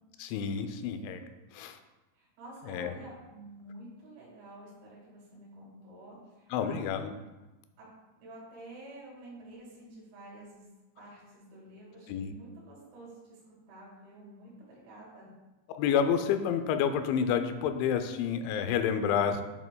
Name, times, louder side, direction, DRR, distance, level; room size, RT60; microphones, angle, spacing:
voice 1, 0.2-1.2 1.5-1.8 2.7-2.9 6.5-7.1 12.1-12.3 15.7-19.4, left 7 dB, 85° left, 8 dB, 3.0 m, -29 dB
voice 2, 2.1-6.8 7.8-7.9 8.2-10.6 11.0-15.3, right 1 dB, 80° right, -7 dB, 4.3 m, -50 dB
8.8 x 8.3 x 2.2 m, 1.1 s
omnidirectional pair, 5.3 m